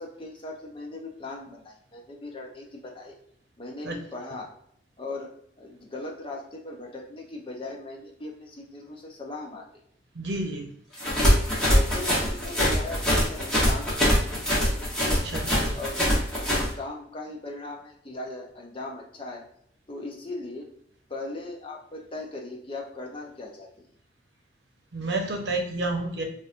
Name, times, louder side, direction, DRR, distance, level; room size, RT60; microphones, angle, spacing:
voice 1, 0.0-3.2 3.6-4.5 5.0-9.7 11.7-14.2 15.7-19.4 19.9-20.7 21.1-23.9, left 2 dB, 30° left, 0 dB, 0.6 m, -39 dB
voice 2, 10.1-10.7 15.1-15.8 24.9-26.2, right 2 dB, 70° right, 2 dB, 0.8 m, -30 dB
sound 1, 11.0-16.7, equal, 5° left, 0.9 m, -23 dB
3.9 x 2.4 x 2.4 m, 0.69 s
head